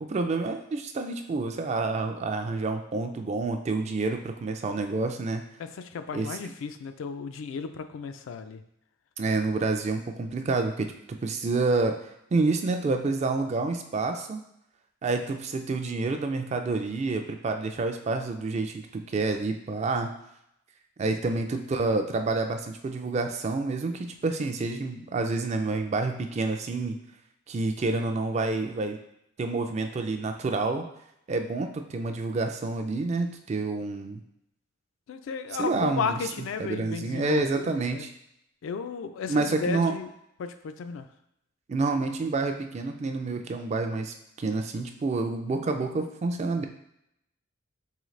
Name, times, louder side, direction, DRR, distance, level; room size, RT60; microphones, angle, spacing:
voice 1, 0.0-5.4 6.1-6.4 9.2-14.4 15.0-20.1 21.0-27.0 27.5-29.0 29.4-30.9 31.3-34.2 35.6-36.2 36.6-38.1 39.3-39.9 41.7-46.6, right 3 dB, 35° right, 6 dB, 0.3 m, -28 dB
voice 2, 5.6-8.6 21.3-21.4 35.1-38.1 38.6-40.1 40.4-41.1, left 5 dB, 70° left, 9 dB, 0.3 m, -34 dB
3.8 x 3.1 x 3.1 m, 0.79 s
head